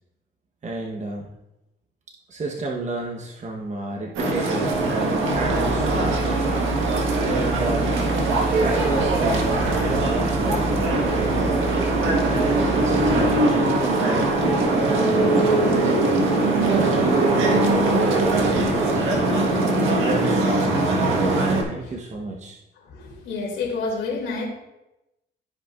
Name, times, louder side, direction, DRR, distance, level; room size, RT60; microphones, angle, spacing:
voice 1, 0.6-1.3 2.3-6.2 7.2-7.9 8.5-11.6 12.3-15.9 16.6-19.4 19.8-21.3 21.6-22.6, right 2 dB, 35° right, 0 dB, 1.1 m, -31 dB
sound 1, 4.1-21.6, right 2 dB, 80° right, 1.5 m, -21 dB
sound 2, 5.3-13.4, right 3 dB, ahead, 0.9 m, -30 dB
voice 2, 22.9-24.5, left 3 dB, 85° left, -2 dB, 2.9 m, -28 dB
14.5 x 5.2 x 2.5 m, 0.95 s
cardioid pair, 90°, 20 cm